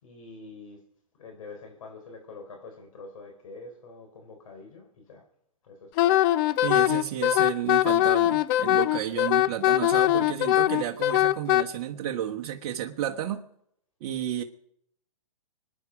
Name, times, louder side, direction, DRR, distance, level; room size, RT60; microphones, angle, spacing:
voice 1, 0.0-0.8 1.2-5.2 5.6-6.2, left 3 dB, 65° left, 3 dB, 4.0 m, -45 dB
Wind instrument woodwind instrument, 6.0-11.6, left 14 dB, 35° left, 0.6 m, -22 dB
voice 2, 6.6-13.4 14.0-14.4, right 11 dB, 45° right, 0 dB, 1.3 m, -32 dB
26.0 x 9.9 x 5.1 m, 0.72 s
hypercardioid pair, 130°, 19 cm